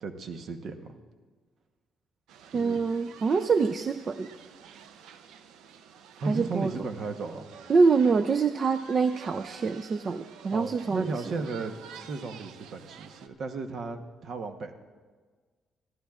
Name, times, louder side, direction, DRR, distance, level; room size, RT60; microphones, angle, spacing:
voice 1, 0.0-0.9 2.5-2.8 6.2-7.5 10.5-14.7, right 4 dB, 60° right, 6 dB, 1.0 m, -35 dB
sound 1, 2.3-13.3, right 8 dB, 90° right, 0.6 m, -50 dB
voice 2, 2.5-4.3 6.3-6.7 7.7-11.2, right 4 dB, 45° right, 10 dB, 0.4 m, -25 dB
22.5 x 14.5 x 2.4 m, 1.5 s
cardioid pair, 90°, 0 cm